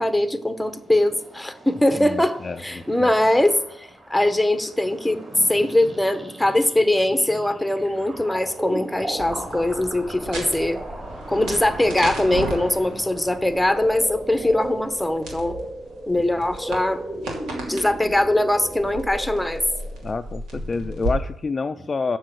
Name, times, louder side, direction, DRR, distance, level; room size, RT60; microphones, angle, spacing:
voice 1, 0.0-5.2 5.5-10.8 11.3-15.6 16.1-17.0 17.7-19.6, left 1 dB, 5° left, 10 dB, 0.9 m, -21 dB
sound 1, 0.6-20.0, right 1 dB, 25° right, 3.6 m, -37 dB
voice 2, 2.0-3.1 12.9-13.0 20.0-22.2, left 4 dB, 30° left, 8 dB, 0.4 m, -28 dB
sound 2, 9.2-21.1, right 1 dB, 85° right, 2.8 m, -35 dB
7.5 x 6.2 x 7.7 m, 0.68 s
cardioid pair, 90°, 0 cm